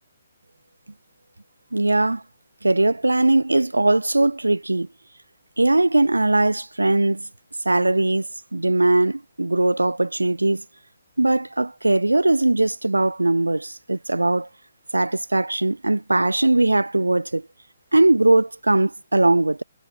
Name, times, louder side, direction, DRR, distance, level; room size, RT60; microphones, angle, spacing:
voice 1, 1.7-2.2 2.6-4.9 5.6-7.3 7.7-8.3 8.5-10.6 11.2-14.5 14.9-17.5 17.9-19.6, right 2 dB, 80° right, 4.1 m, -20 dB
figure-of-eight pair, 135°, 0 cm